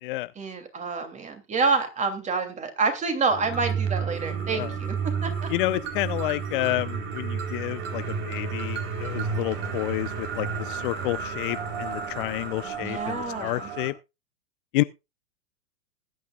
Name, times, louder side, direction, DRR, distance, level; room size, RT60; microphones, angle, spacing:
voice 1, 0.4-5.3 12.8-13.7, right 4 dB, 20° right, 2.9 m, -28 dB
sound 1, 3.3-13.9, right 6 dB, 55° right, 4.4 m, -32 dB
voice 2, 5.5-13.9 14.7-14.8, left 19 dB, 45° left, 0.6 m, -29 dB
20.5 x 9.3 x 2.4 m
figure-of-eight pair, 100°, 35 cm